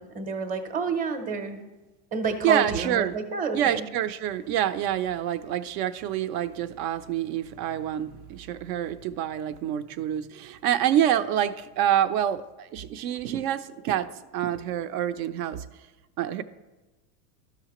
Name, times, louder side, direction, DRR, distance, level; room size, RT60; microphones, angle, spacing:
voice 1, 0.0-1.6 2.1-3.8, right 5 dB, 15° right, 6 dB, 0.7 m, -29 dB
voice 2, 2.4-3.1 3.5-15.6 16.2-16.4, right 11 dB, 60° right, 12 dB, 0.6 m, -27 dB
13.0 x 5.8 x 3.0 m, 1.1 s
supercardioid pair, 140°, 48 cm